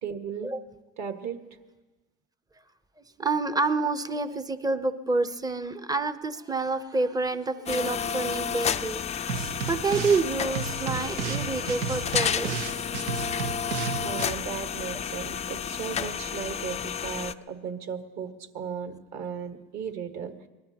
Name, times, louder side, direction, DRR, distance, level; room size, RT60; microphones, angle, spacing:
voice 1, 0.0-0.5 1.0-1.4 14.0-20.4, right 7 dB, 45° right, 6 dB, 1.7 m, -36 dB
voice 2, 3.2-12.5, right 3 dB, 10° right, 12 dB, 0.7 m, -28 dB
sound 1, 7.7-17.3, left 7 dB, 20° left, 0.4 m, -31 dB
sound 2, 9.3-10.3 10.5-14.3, right 7 dB, 80° right, 1.1 m, -33 dB
22.5 x 19.5 x 2.9 m, 1.2 s
supercardioid pair, 100°, 37 cm